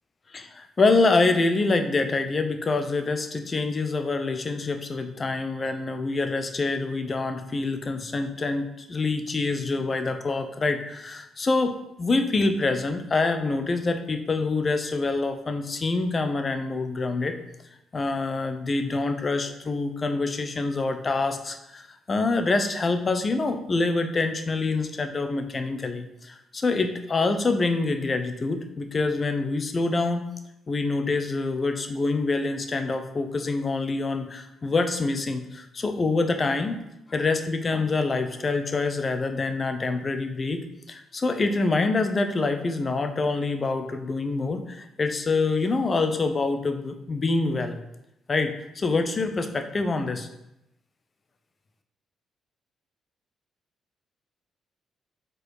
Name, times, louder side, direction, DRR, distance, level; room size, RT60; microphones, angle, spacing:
voice 1, 0.3-17.4 17.9-30.3 30.7-36.8 37.1-47.8 48.3-50.3, left 3 dB, 40° left, 7 dB, 0.8 m, -26 dB
5.0 x 4.1 x 4.8 m, 0.85 s
supercardioid pair, 55°, 0 cm